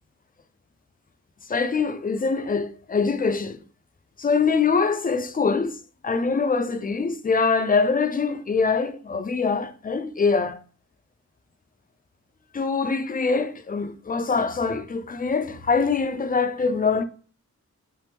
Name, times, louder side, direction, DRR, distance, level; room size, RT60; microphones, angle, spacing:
voice 1, 1.5-3.6 4.2-10.6 12.5-17.0, left 4 dB, 30° left, 0.4 m, -24 dB
2.9 x 2.0 x 3.3 m
wide cardioid pair, 55°, 31 cm